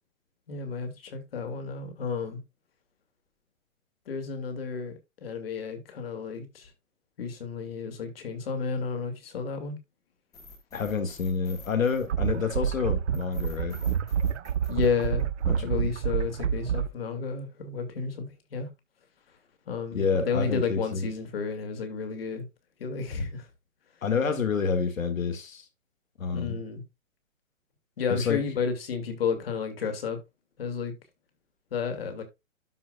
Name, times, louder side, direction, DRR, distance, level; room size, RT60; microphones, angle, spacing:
voice 1, 0.5-2.4 4.1-6.7 7.2-9.8 14.7-15.3 15.6-18.7 19.7-22.5 22.8-23.5 26.3-26.8 28.0-30.2 30.6-30.9 31.7-32.2, left 5 dB, 45° left, 2.5 m, -32 dB
sound 1, 10.3-12.6 13.1-15.6, left 3 dB, 10° left, 1.3 m, -49 dB
voice 2, 10.7-13.8 15.5-15.9 19.9-21.1 24.0-25.7 26.2-26.6 28.1-28.4, left 5 dB, 90° left, 2.3 m, -28 dB
sound 2, 12.0-16.9, right 8 dB, 60° right, 0.7 m, -28 dB
12.5 x 5.1 x 2.4 m
hypercardioid pair, 170°, 39 cm